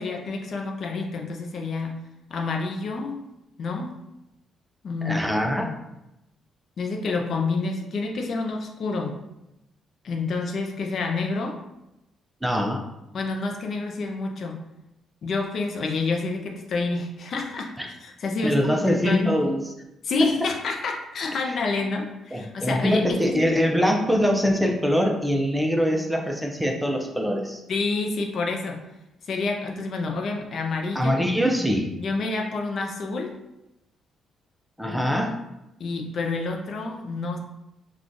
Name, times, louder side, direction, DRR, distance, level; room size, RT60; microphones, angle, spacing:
voice 1, 0.0-2.0 2.3-3.2 3.6-4.0 4.8-5.3 5.6-5.7 6.8-9.2 10.0-11.6 13.1-14.6 15.2-17.7 18.0-19.4 20.0-23.5 27.7-28.8 29.2-31.2 32.0-33.3 34.9-35.1 35.8-37.4, left 3 dB, 60° left, 2 dB, 0.5 m, -28 dB
voice 2, 5.0-5.7 12.4-12.8 17.8-17.9 18.4-19.6 21.4-21.5 22.3-27.6 30.9-31.9 34.8-35.4, equal, 5° right, 1 dB, 0.5 m, -23 dB
3.7 x 2.3 x 2.5 m, 0.90 s
cardioid pair, 90°, 0 cm